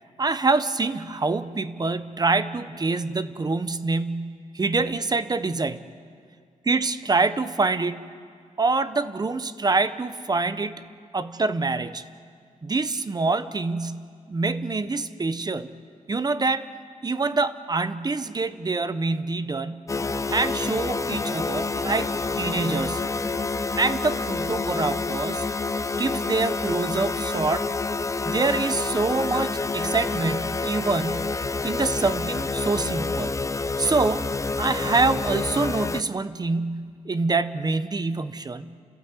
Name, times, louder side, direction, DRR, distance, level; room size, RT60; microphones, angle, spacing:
voice 1, 0.2-5.8 6.6-8.0 8.6-10.9 11.1-12.0 12.6-15.8 16.1-16.7 17.0-19.8 20.3-23.0 23.8-25.5 26.0-27.7 28.2-31.3 31.6-33.4 33.8-34.3 34.6-38.7, right 3 dB, 30° right, 13 dB, 0.8 m, -25 dB
sound 1, 19.9-36.0, left 3 dB, 25° left, 0.5 m, -28 dB
29.5 x 15.5 x 8.2 m, 2.1 s
wide cardioid pair, 130°, 14 cm